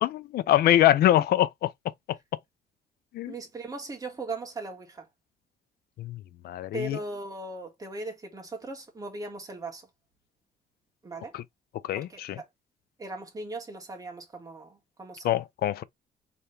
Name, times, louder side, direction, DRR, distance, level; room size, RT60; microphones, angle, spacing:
voice 1, 0.0-1.7 3.1-3.3 6.0-6.2 6.4-7.0 11.3-11.4 11.9-12.1 15.2-15.8, left 12 dB, 75° left, 0.6 m, -23 dB
voice 2, 3.3-5.1 6.7-9.9 11.0-11.4 11.9-12.2 13.0-15.4, right 2 dB, 20° right, 1.8 m, -38 dB
4.2 x 3.5 x 3.2 m
cardioid pair, 135°, 16 cm